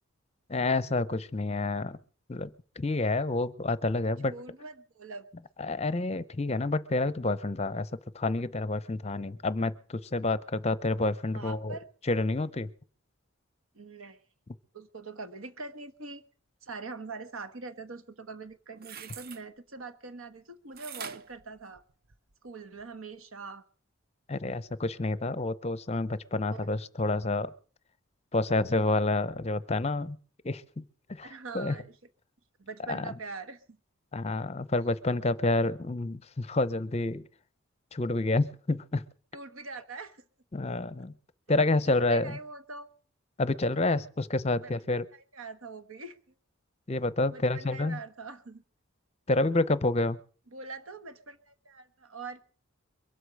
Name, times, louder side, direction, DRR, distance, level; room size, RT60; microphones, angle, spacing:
voice 1, 0.5-2.0 2.3-2.5 2.8-4.3 5.6-11.8 12.1-12.7 24.3-27.5 28.3-30.2 30.4-30.8 31.1-31.3 31.5-31.7 32.9-33.1 34.1-37.2 37.9-39.0 40.5-41.1 41.5-42.4 43.4-45.0 46.9-48.0 49.3-50.2, left 2 dB, 30° left, 16 dB, 0.6 m, -28 dB
voice 2, 4.2-5.3 11.3-11.9 13.7-14.2 14.7-16.2 16.6-21.8 22.4-23.6 26.5-26.7 31.2-31.9 32.6-33.8 34.8-34.9 39.3-40.2 41.5-42.9 44.5-46.2 47.3-48.6 50.5-52.4, right 4 dB, 75° right, 10 dB, 1.4 m, -43 dB
sound 1, 18.5-19.4 20.8-22.3 22.8-22.9, right 7 dB, 45° right, 0.6 m, -44 dB
23.0 x 8.1 x 6.4 m, 0.43 s
head